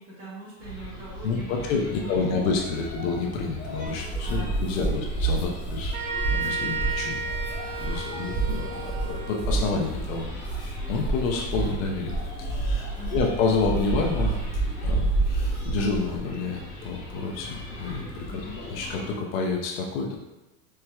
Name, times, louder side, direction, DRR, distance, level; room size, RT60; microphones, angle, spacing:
voice 1, 0.0-2.4 4.2-5.5 12.9-13.3 18.3-18.6, equal, 30° right, -6 dB, 1.2 m, -42 dB
sound 1, 0.6-19.1, left 1 dB, 15° left, 0.3 m, -39 dB
voice 2, 1.2-6.0 6.2-7.3 7.8-10.6 10.9-14.4 14.8-20.2, left 4 dB, 55° left, 0 dB, 0.6 m, -29 dB
sound 2, 3.8-16.2, right 3 dB, 15° right, 0.9 m, -29 dB
sound 3, 5.9-9.6, right 5 dB, 65° right, 1.0 m, -33 dB
4.4 x 2.1 x 2.3 m, 1.0 s
supercardioid pair, 140°, 48 cm